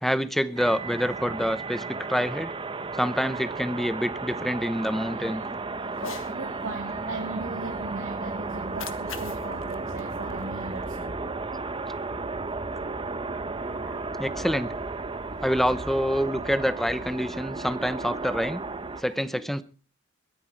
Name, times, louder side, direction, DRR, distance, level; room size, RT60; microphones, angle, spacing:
voice 1, 0.0-2.5 2.9-5.4 14.2-14.7 15.4-18.6 19.0-19.6, equal, ahead, 14 dB, 0.8 m, -27 dB
sound 1, 0.6-19.0, right 3 dB, 25° right, 0.9 m, -34 dB
voice 2, 3.8-4.5 5.1-5.4 5.7-11.4 11.8-12.1 12.9-13.1 13.5-14.1 15.1-15.4 19.0-19.5, right 2 dB, 85° right, 0 dB, 3.2 m, -40 dB
Cat, 5.9-6.3 8.5-10.9, left 6 dB, 80° left, 1.5 m, -42 dB
21.5 x 10.0 x 4.5 m, 0.38 s
head